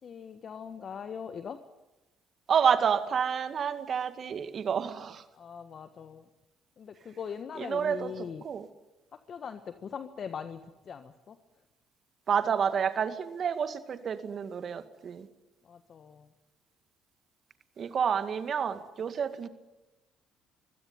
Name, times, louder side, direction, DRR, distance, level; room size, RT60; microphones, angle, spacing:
voice 1, 0.0-1.6 5.3-6.3 6.8-8.4 9.1-10.6 10.8-11.4 15.6-16.3, left 7 dB, 50° left, 9 dB, 1.4 m, -41 dB
voice 2, 2.5-5.2 7.6-8.1 8.4-8.7 12.3-15.3 17.8-19.5, right 7 dB, 50° right, 11 dB, 2.0 m, -29 dB
24.5 x 16.5 x 9.6 m, 1.1 s
hypercardioid pair, 60°, 0 cm